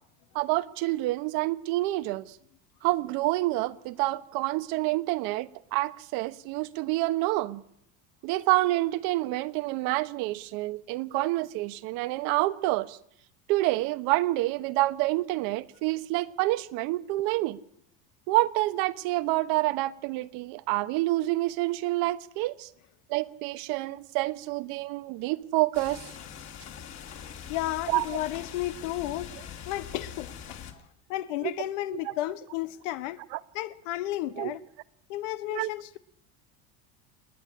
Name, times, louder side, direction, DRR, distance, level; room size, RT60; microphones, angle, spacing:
voice 1, 0.3-2.4 2.8-7.6 8.2-13.0 13.5-17.6 18.3-22.7 23.1-26.1 27.9-28.0 31.4-31.5 32.0-32.1 33.3-33.4 34.4-34.5 35.5-35.7, right 18 dB, 70° right, 1.2 m, -28 dB
sound 1, 25.7-30.7, left 8 dB, 45° left, 2.8 m, -43 dB
voice 2, 27.5-29.4 29.7-30.8 31.1-33.2 33.5-34.6 35.1-36.0, left 15 dB, 85° left, 1.3 m, -33 dB
27.5 x 10.0 x 10.0 m
cardioid pair, 130°, 36 cm